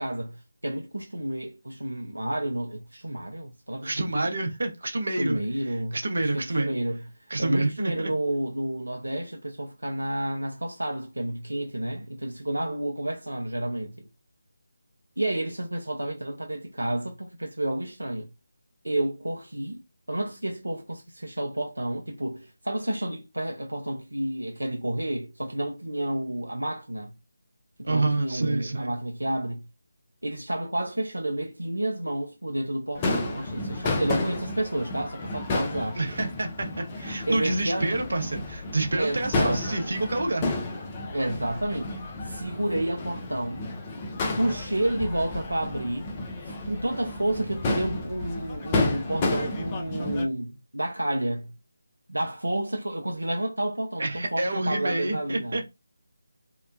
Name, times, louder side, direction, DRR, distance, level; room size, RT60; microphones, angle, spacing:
voice 1, 0.0-4.1 5.2-7.0 7.4-14.1 15.2-18.3 18.8-27.1 27.9-29.7 30.2-36.0 37.3-38.1 39.0-40.0 41.1-41.9 42.2-43.6 44.4-46.1 46.4-51.5 52.1-55.6, right 1 dB, 80° right, 0.5 m, -30 dB
voice 2, 3.8-5.4 5.7-6.7 7.3-8.1 27.8-28.9 36.0-40.5 54.0-55.6, right 2 dB, 60° right, 0.8 m, -28 dB
Crowd / Fireworks, 33.0-50.2, left 2 dB, 20° left, 0.6 m, -31 dB
2.8 x 2.1 x 2.4 m
figure-of-eight pair, 155°, 0 cm